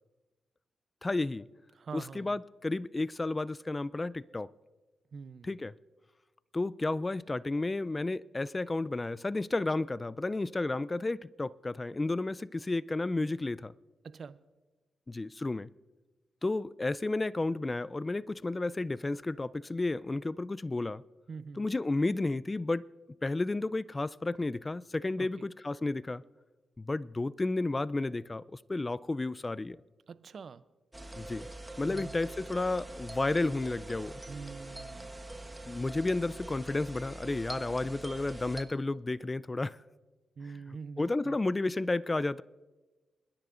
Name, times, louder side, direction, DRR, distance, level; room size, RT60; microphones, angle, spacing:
voice 1, 1.0-1.5 1.9-4.5 5.4-5.7 6.5-13.7 15.1-15.7 16.4-21.0 21.6-22.9 23.2-26.2 26.8-28.4 28.7-29.8 31.2-31.5 31.8-34.2 35.7-39.8 41.0-42.4, left 2 dB, 30° left, 0.4 m, -32 dB
voice 2, 1.7-2.4 5.1-5.6 14.0-14.4 21.3-21.7 25.2-25.5 30.1-30.6 31.9-32.2 34.3-35.1 40.4-41.4, right 5 dB, 60° right, 0.5 m, -45 dB
sound 1, 30.9-38.6, right 2 dB, 15° right, 1.3 m, -44 dB
27.5 x 10.5 x 2.5 m
supercardioid pair, 55°, 0 cm